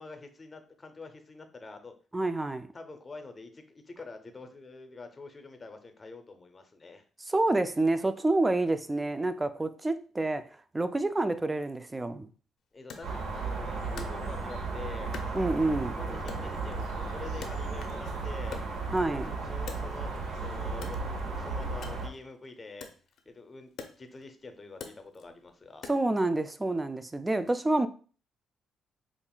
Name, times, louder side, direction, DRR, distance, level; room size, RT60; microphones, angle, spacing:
voice 1, 0.0-1.9 2.7-7.0 12.7-15.1 15.7-18.6 19.1-22.9 23.3-25.9, left 3 dB, 30° left, 0.6 m, -46 dB
voice 2, 2.1-2.7 7.3-10.5 10.7-12.3 15.3-16.0 18.9-19.3 25.9-27.9, right 2 dB, 15° right, 0.3 m, -28 dB
Wood, 12.9-14.7 15.1-15.9 16.3-18.1 18.4-20.3 20.7-26.3, left 6 dB, 65° left, 0.5 m, -47 dB
sound 1, 13.0-22.1, right 3 dB, 75° right, 0.9 m, -35 dB
5.3 x 2.4 x 2.3 m
cardioid pair, 90°, 0 cm